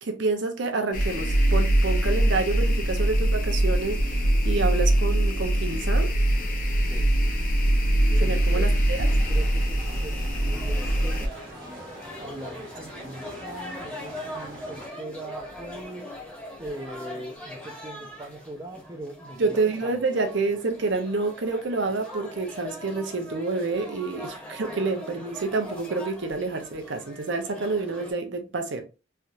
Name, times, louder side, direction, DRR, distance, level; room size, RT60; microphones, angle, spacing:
voice 1, 0.0-6.1 8.2-9.2 19.4-28.8, right 3 dB, 65° right, 0.7 m, -28 dB
sound 1, 0.9-11.3, right 1 dB, 45° left, 0.6 m, -22 dB
voice 2, 8.1-9.0 9.3-11.3 12.2-16.1 16.6-19.5, right 1 dB, 15° right, 0.6 m, -41 dB
sound 2, 9.0-14.9, right 1 dB, 45° right, 1.2 m, -44 dB
sound 3, 10.1-28.1, left 1 dB, 5° left, 1.1 m, -41 dB
3.3 x 2.8 x 2.4 m
head